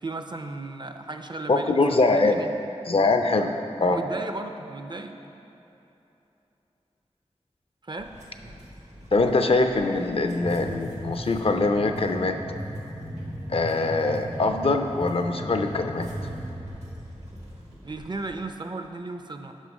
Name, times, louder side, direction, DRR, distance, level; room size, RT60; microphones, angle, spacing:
voice 1, 0.0-2.5 3.9-5.1 7.8-8.1 17.8-19.5, right 2 dB, 40° right, 6 dB, 0.5 m, -35 dB
voice 2, 1.5-2.4 2.9-3.5 3.8-4.0 9.1-12.4 13.5-16.1, left 3 dB, 55° left, 6 dB, 0.5 m, -23 dB
sound 1, 8.0-18.4, equal, 85° right, 1.3 m, -38 dB
6.3 x 5.4 x 5.3 m, 3.0 s
wide cardioid pair, 50°, 11 cm